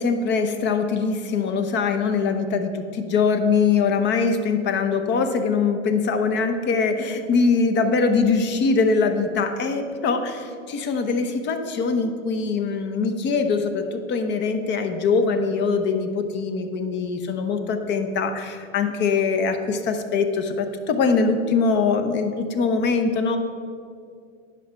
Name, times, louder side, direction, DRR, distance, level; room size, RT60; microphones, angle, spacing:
voice 1, 0.0-23.4, left 4 dB, 30° left, 7 dB, 0.9 m, -22 dB
11.0 x 5.8 x 5.6 m, 2.4 s
hypercardioid pair, 110°, 39 cm